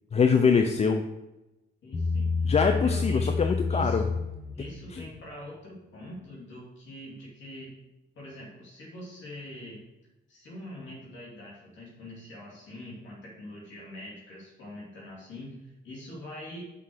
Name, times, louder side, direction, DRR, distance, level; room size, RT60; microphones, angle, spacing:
voice 1, 0.1-1.0 2.4-4.0, left 5 dB, 35° left, 6 dB, 0.6 m, -23 dB
voice 2, 1.8-2.3 2.6-3.4 3.7-4.0 4.6-7.7 8.1-9.8 10.3-16.6, left 1 dB, 70° left, -4 dB, 2.8 m, -43 dB
Bass guitar, 1.9-5.3, left 4 dB, 55° left, 3.0 m, -29 dB
6.1 x 5.4 x 6.4 m, 0.97 s
cardioid pair, 90°, 20 cm